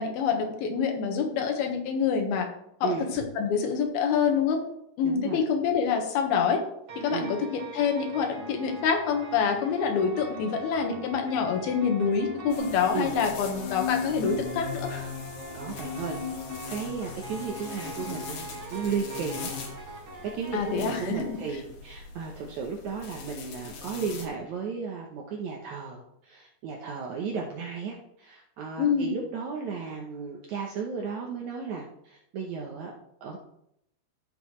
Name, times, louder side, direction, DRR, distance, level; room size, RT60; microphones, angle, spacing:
voice 1, 0.0-2.5 2.8-4.6 5.0-6.6 7.0-7.4 7.7-14.9 20.5-21.2 28.8-29.1, left 6 dB, 75° left, 3 dB, 3.1 m, -26 dB
voice 2, 5.0-5.4 7.1-7.3 12.9-13.2 15.5-16.4 16.7-32.9 33.2-33.4, right 5 dB, 85° right, 0 dB, 1.6 m, -35 dB
sound 1, 6.9-21.6, right 2 dB, 45° right, 1.8 m, -43 dB
sound 2, 12.5-24.3, left 5 dB, 60° left, 2.1 m, -38 dB
13.5 x 7.0 x 3.1 m, 0.77 s
omnidirectional pair, 4.7 m